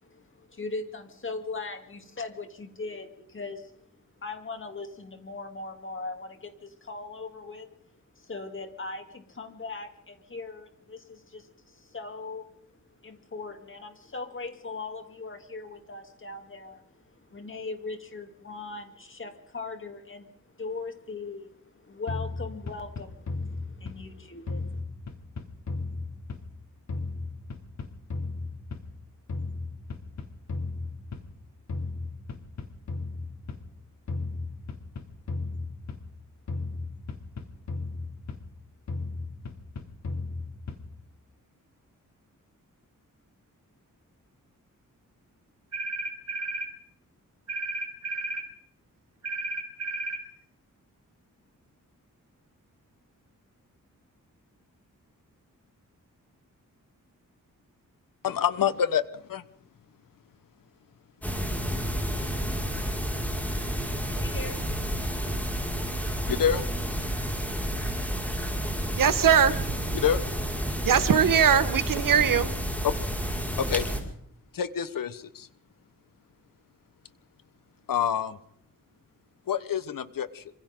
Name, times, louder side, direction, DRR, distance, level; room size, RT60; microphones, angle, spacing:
voice 1, 0.0-3.7 4.2-7.7 8.1-24.8 63.2-64.8, left 3 dB, 40° left, 3.2 m, -40 dB
sound 1, 22.1-24.2 24.5-26.6 26.9-29.0 29.3-31.4 31.7-33.7 34.1-36.2 36.5-38.6 38.9-41.0, left 3 dB, 55° left, 3.0 m, -35 dB
sound 2, 45.7-46.7 47.5-48.5 49.2-50.2, right 2 dB, 55° right, 4.1 m, -33 dB
voice 2, 58.2-59.4 66.3-66.7 69.9-70.2 72.8-72.9 73.6-73.9 74.5-75.5 77.9-78.4 79.5-80.4, left 8 dB, 85° left, 1.3 m, -27 dB
sound 3, 61.2-74.0, equal, 5° left, 5.6 m, -30 dB
voice 3, 69.0-69.9 70.8-72.5, right 8 dB, 80° right, 1.6 m, -21 dB
27.0 x 26.0 x 3.9 m
wide cardioid pair, 120°, 33 cm